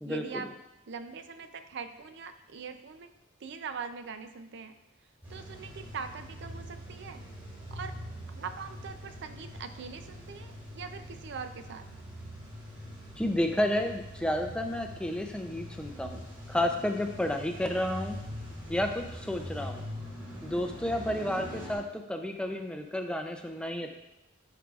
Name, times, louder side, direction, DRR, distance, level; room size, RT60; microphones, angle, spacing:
voice 1, 0.0-0.5 0.9-3.1 3.4-4.7 5.3-7.2 7.7-7.9 8.3-11.9, right 5 dB, 60° right, 9 dB, 0.5 m, -42 dB
Car / Engine starting / Idling, 5.2-21.8, equal, 25° right, 2.6 m, -43 dB
voice 2, 13.2-18.2 18.7-19.8 20.4-23.9, left 1 dB, 5° left, 4 dB, 0.4 m, -31 dB
11.0 x 4.7 x 2.4 m, 0.92 s
head